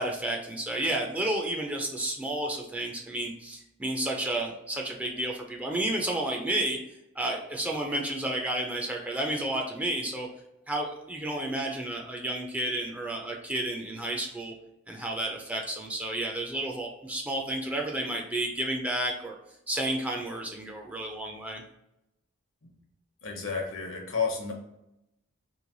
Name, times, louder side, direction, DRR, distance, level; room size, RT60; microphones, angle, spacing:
voice 1, 0.0-6.8 7.2-10.3 10.7-14.5 14.9-19.4 19.7-21.6, right 1 dB, 10° right, 0 dB, 0.4 m, -31 dB
voice 2, 23.2-24.5, left 5 dB, 70° left, 1 dB, 0.9 m, -31 dB
3.2 x 2.9 x 3.8 m, 0.86 s
head